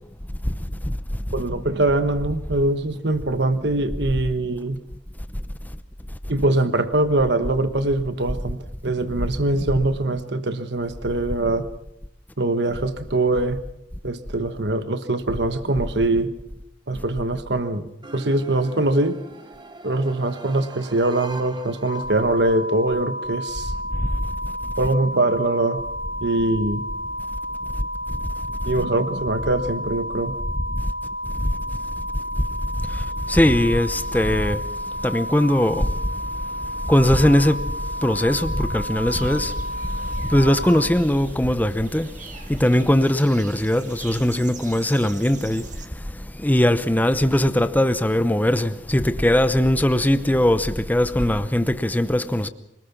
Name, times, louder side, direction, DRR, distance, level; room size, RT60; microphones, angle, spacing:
voice 1, 1.3-4.8 6.3-11.7 12.4-13.6 14.0-16.3 16.9-19.2 19.8-23.7 24.8-25.8 26.2-26.9 28.7-30.4, right 2 dB, 60° right, 1.3 m, -23 dB
sound 1, 18.0-22.7, right 2 dB, 25° right, 1.2 m, -41 dB
sound 2, 21.9-40.9, equal, 60° left, 1.8 m, -31 dB
voice 2, 33.3-34.6 35.0-35.9 36.9-37.6 38.0-39.5 40.3-42.1 42.5-45.6 46.4-52.5, left 1 dB, 10° left, 0.8 m, -20 dB
sound 3, 39.1-45.9, right 4 dB, 40° right, 1.8 m, -43 dB
25.5 x 20.0 x 6.0 m
head